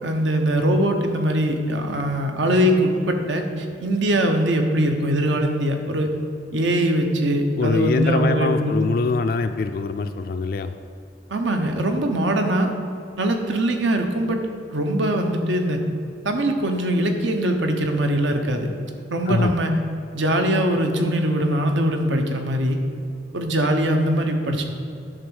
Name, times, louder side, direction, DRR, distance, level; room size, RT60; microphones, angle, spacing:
voice 1, 0.0-6.1 6.5-8.9 11.3-12.7 13.2-14.4 14.7-15.8 16.2-18.7 19.1-19.7 20.1-22.8 23.3-24.6, right 1 dB, 80° right, 4 dB, 1.0 m, -22 dB
voice 2, 7.6-10.7 19.3-19.5, left 4 dB, 50° left, 8 dB, 0.3 m, -23 dB
10.5 x 3.9 x 6.4 m, 2.6 s
head